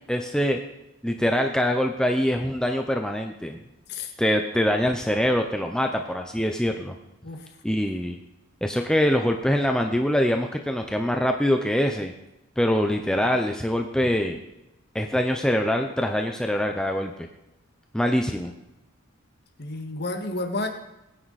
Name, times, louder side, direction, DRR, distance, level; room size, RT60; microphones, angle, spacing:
voice 1, 0.1-0.6 1.0-3.6 4.2-6.9 7.6-8.2 8.6-12.1 12.6-14.4 14.9-17.1 17.9-18.5, equal, 5° left, 3 dB, 0.7 m, -24 dB
voice 2, 19.6-20.7, left 2 dB, 50° left, 3 dB, 1.9 m, -31 dB
20.5 x 9.7 x 4.2 m, 0.94 s
head